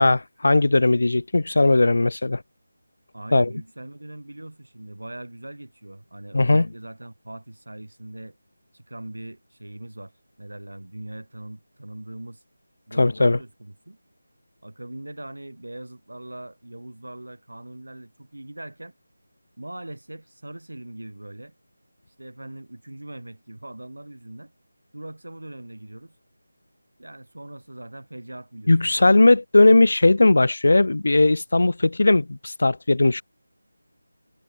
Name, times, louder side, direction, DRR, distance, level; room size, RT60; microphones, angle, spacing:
voice 1, 0.0-2.4 3.3-3.5 6.3-6.7 13.0-13.4 28.7-33.2, left 2 dB, 60° left, 0.4 m, -18 dB
voice 2, 3.1-8.4 8.7-10.1 10.4-12.4 12.9-14.0 14.6-18.9 19.6-21.6 22.2-24.5 24.9-26.1 27.0-29.1, right 1 dB, 70° right, 5.4 m, -40 dB
figure-of-eight pair, 165°, 0 cm